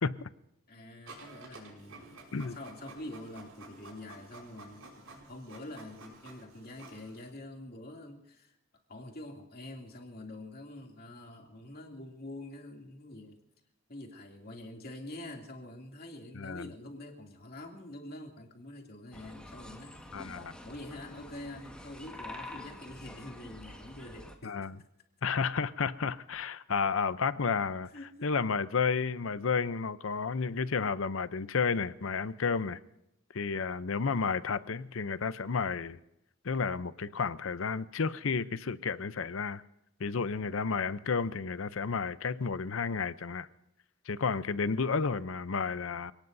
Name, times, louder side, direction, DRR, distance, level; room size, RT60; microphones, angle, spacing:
voice 1, 0.7-8.5 8.9-13.4 13.9-20.1 20.6-24.5 27.8-28.3, left 1 dB, 50° left, 2.8 m, -46 dB
Printer, 1.1-7.3, right 2 dB, 80° right, 5.8 m, -51 dB
voice 2, 16.3-16.7 20.1-20.5 24.4-24.8 25.2-27.9 28.2-32.8 33.3-36.0 36.4-39.6 40.0-43.5 44.1-46.1, left 5 dB, 75° left, 0.7 m, -31 dB
sound 1, 19.1-24.4, left 1 dB, 5° left, 1.6 m, -47 dB
28.0 x 18.5 x 2.7 m
head